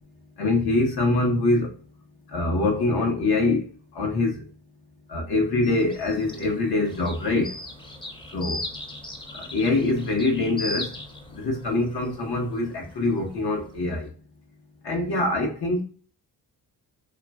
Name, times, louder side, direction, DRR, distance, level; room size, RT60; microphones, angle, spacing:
voice 1, 0.4-1.7 2.3-3.6 4.0-4.4 5.1-7.5 8.3-8.6 9.5-10.9 11.3-14.1 14.8-15.8, left 2 dB, 65° left, 0.9 m, -24 dB
sound 1, 5.6-14.0, left 1 dB, 10° left, 0.5 m, -39 dB
3.1 x 2.3 x 2.2 m
cardioid pair, 75°, 41 cm